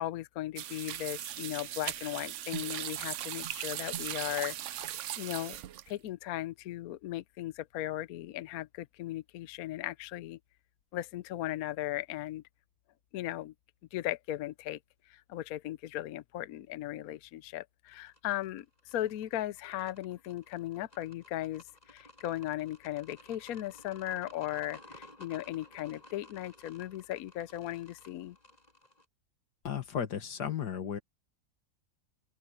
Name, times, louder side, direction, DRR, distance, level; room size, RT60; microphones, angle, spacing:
voice 1, 0.0-4.9 5.2-5.6 5.9-10.4 10.9-12.4 13.1-13.5 13.9-14.8 15.1-28.4, left 14 dB, 70° left, 1.0 m, -37 dB
sound 1, 0.6-6.1, right 12 dB, 65° right, 0.8 m, -38 dB
sound 2, 17.9-29.0, left 1 dB, 25° left, 7.3 m, -55 dB
voice 2, 29.6-31.0, left 8 dB, 85° left, 2.1 m, -34 dB
open air
omnidirectional pair, 1.7 m